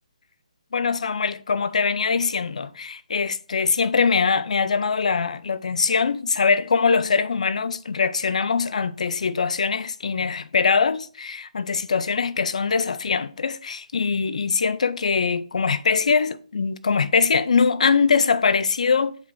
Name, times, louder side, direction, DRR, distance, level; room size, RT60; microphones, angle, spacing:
voice 1, 0.7-19.2, left 5 dB, 65° left, 0.6 m, -22 dB
7.6 x 5.2 x 3.2 m
hypercardioid pair, 160°, 4 cm